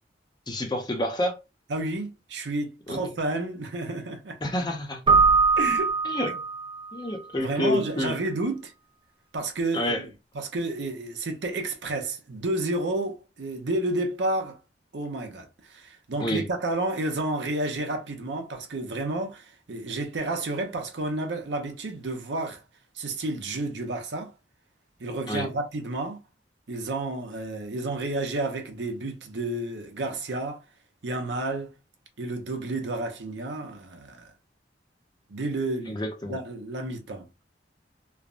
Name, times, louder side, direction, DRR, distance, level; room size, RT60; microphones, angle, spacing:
voice 1, 0.5-1.4 2.9-3.0 4.4-5.0 6.0-6.4 6.9-8.2 9.7-10.0 16.2-16.5 25.3-25.5 35.9-36.4, left 1 dB, 25° left, 0.6 m, -28 dB
voice 2, 1.7-4.4 5.6-5.9 7.4-8.7 9.3-10.1 10.3-14.6 14.9-22.6 22.9-24.3 25.0-26.2 26.7-30.6 31.0-31.7 32.2-34.3 35.3-36.0 36.3-37.3, right 2 dB, 80° right, 0.7 m, -31 dB
Keyboard (musical), 5.1-6.9, right 4 dB, 25° right, 0.5 m, -21 dB
3.3 x 2.0 x 2.4 m
head